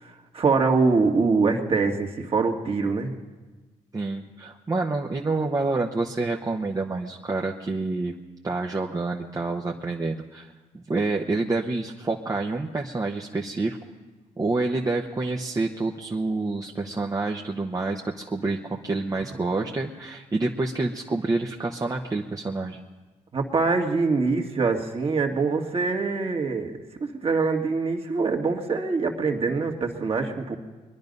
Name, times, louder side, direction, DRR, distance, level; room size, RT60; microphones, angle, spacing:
voice 1, 0.0-3.1 23.3-30.5, right 4 dB, 45° right, 2 dB, 2.0 m, -24 dB
voice 2, 3.9-8.1 8.4-13.8 14.4-22.8, right 3 dB, 25° right, 1 dB, 1.0 m, -28 dB
23.0 x 10.5 x 5.4 m, 1.3 s
cardioid pair, 75°, 14 cm